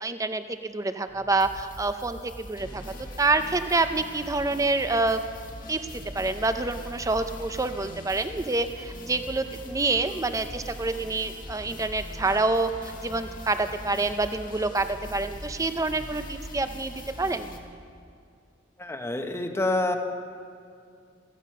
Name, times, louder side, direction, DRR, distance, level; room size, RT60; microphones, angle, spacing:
voice 1, 0.0-2.8 3.2-5.2 5.7-17.5, right 3 dB, 20° right, 9 dB, 0.6 m, -27 dB
sound 1, 1.1-17.6, left 1 dB, 50° left, 1.6 m, -41 dB
voice 2, 18.8-20.0, left 2 dB, 15° left, 5 dB, 0.9 m, -27 dB
15.0 x 15.0 x 5.6 m, 2.3 s
head